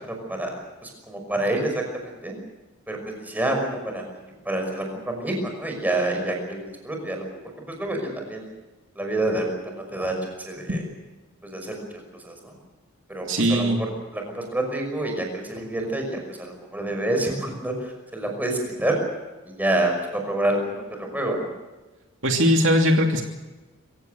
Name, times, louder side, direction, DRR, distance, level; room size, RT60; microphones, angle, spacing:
voice 1, 0.1-0.5 0.8-2.3 2.9-4.1 4.4-7.3 7.7-8.5 9.0-10.8 11.4-12.5 13.1-19.0 19.5-21.5, right 1 dB, 10° right, 2 dB, 5.7 m, -28 dB
voice 2, 13.3-13.8 22.2-23.2, equal, 60° right, 2 dB, 2.8 m, -19 dB
26.5 x 16.5 x 7.9 m, 1.2 s
head